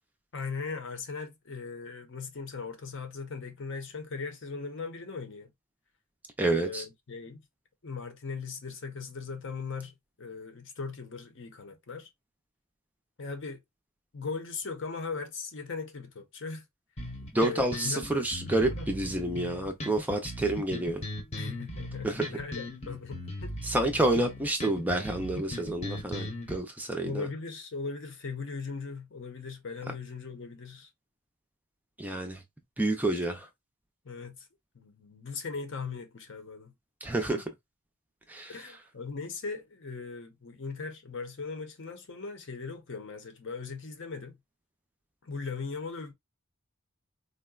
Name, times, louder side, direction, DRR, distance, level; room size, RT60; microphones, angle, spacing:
voice 1, 0.3-5.5 6.5-7.4 7.8-12.1 13.2-13.6 14.1-16.7 17.4-18.0 18.7-18.9 21.3-23.5 27.0-30.9 34.0-34.5 34.7-36.7 38.5-44.4 45.2-46.1, left 4 dB, 60° left, 0.7 m, -39 dB
voice 2, 6.4-6.8 17.3-21.0 22.0-22.2 23.6-27.3 32.0-32.4 32.8-33.5 37.0-37.4 38.3-38.5, right 1 dB, 10° right, 0.4 m, -29 dB
sound 1, 17.0-26.6, left 1 dB, 30° left, 0.8 m, -38 dB
3.8 x 2.1 x 2.2 m
head